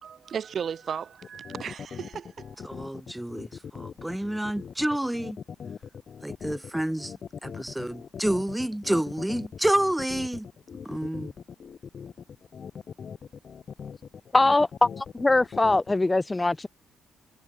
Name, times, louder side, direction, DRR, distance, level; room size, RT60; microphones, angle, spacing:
voice 1, 0.0-2.7, right 7 dB, 50° right, 2.2 m, -35 dB
sound 1, 1.2-15.9, left 7 dB, 50° left, 1.6 m, -41 dB
voice 2, 2.6-5.4 6.2-7.1 7.4-10.5 10.9-11.3, right 1 dB, 5° right, 2.0 m, -29 dB
voice 3, 14.3-16.7, left 2 dB, 15° left, 0.4 m, -22 dB
cardioid pair, 90°, 0 cm